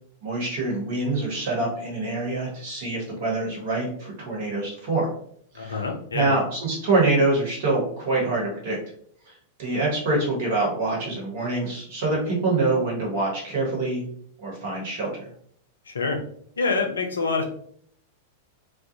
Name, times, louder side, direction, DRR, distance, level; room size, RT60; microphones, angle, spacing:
voice 1, 0.2-5.1 5.5-5.8 6.1-8.8 9.6-14.0 14.4-15.3, right 2 dB, 55° right, -3 dB, 1.1 m, -25 dB
voice 2, 5.5-6.3 15.9-16.2 16.6-17.4, left 4 dB, 75° left, 4 dB, 0.4 m, -26 dB
2.4 x 2.0 x 2.7 m, 0.62 s
figure-of-eight pair, 95°, 0 cm